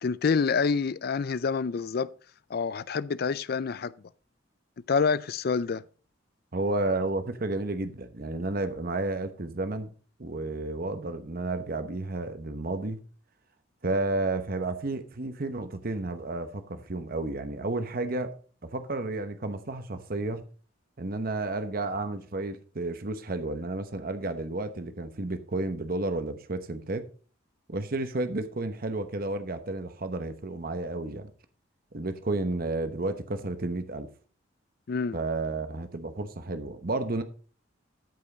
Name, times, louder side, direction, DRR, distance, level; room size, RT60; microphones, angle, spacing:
voice 1, 0.0-2.1 2.5-3.9 4.9-5.8 34.9-35.2, left 5 dB, 50° left, 0.4 m, -27 dB
voice 2, 6.5-9.9 10.2-13.0 13.8-18.4 18.6-20.4 21.0-27.1 27.7-31.3 31.9-34.1 35.1-37.2, right 2 dB, 50° right, 0.9 m, -31 dB
13.0 x 5.6 x 3.9 m
head